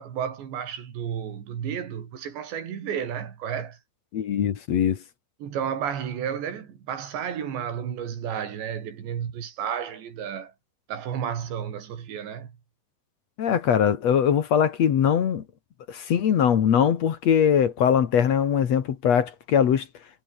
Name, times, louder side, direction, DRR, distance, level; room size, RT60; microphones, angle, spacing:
voice 1, 0.0-3.8 5.4-10.5 10.9-12.5, right 8 dB, 75° right, 5.4 m, -32 dB
voice 2, 4.1-5.0 13.4-15.4 15.9-19.9, left 8 dB, 55° left, 2.1 m, -21 dB
omnidirectional pair, 5.1 m